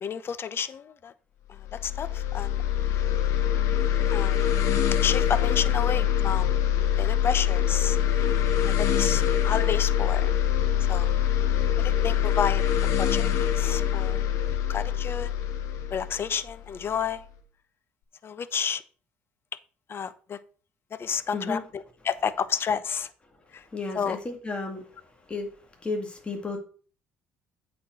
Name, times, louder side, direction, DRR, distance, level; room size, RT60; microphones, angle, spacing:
voice 1, 0.0-1.1 1.8-2.6 2.9-3.1 4.1-4.4 5.0-6.5 7.0-8.0 8.6-10.3 10.9-11.1 11.8-12.6 13.0-14.2 14.7-15.3 15.9-17.2 18.2-18.8 19.9-20.4 21.0-23.1 23.5-23.6 24.0-24.2, left 7 dB, 45° left, 0.8 m, -30 dB
sound 1, 1.6-17.0, left 10 dB, 70° left, 1.2 m, -24 dB
voice 2, 21.3-21.6 23.7-25.0 25.3-25.5 25.8-26.6, left 3 dB, 20° left, 2.0 m, -33 dB
8.4 x 4.4 x 6.2 m
hypercardioid pair, 60°, 5 cm